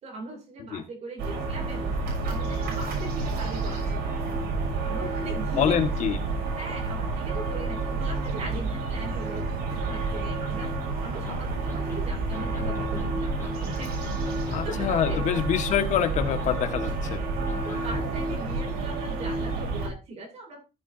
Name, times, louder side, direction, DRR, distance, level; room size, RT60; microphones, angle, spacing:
voice 1, 0.0-4.2 4.8-6.2 6.5-10.7 11.0-13.9 14.2-15.4 17.4-20.6, right 2 dB, 45° right, 3.0 m, -40 dB
sound 1, 1.2-19.9, right 3 dB, 90° right, 6.5 m, -29 dB
voice 2, 5.6-6.2 14.5-17.2, left 9 dB, 50° left, 1.7 m, -26 dB
sound 2, 11.3-11.4 11.7-12.0 12.3-13.1 13.4-13.7 14.0-14.8 15.1-15.5 15.8-16.5 16.8-17.2 17.5-18.1, left 4 dB, 15° left, 3.9 m, -39 dB
14.5 x 8.0 x 2.7 m
cardioid pair, 175°, 16 cm